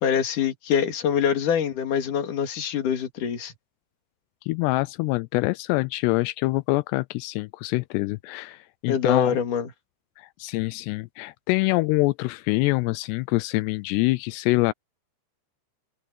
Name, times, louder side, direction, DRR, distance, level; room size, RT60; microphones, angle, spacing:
voice 1, 0.0-3.5 8.9-9.7, left 8 dB, 55° left, 3.5 m, -24 dB
voice 2, 4.5-9.4 10.2-14.7, left 22 dB, 85° left, 2.7 m, -25 dB
omnidirectional pair, 4.8 m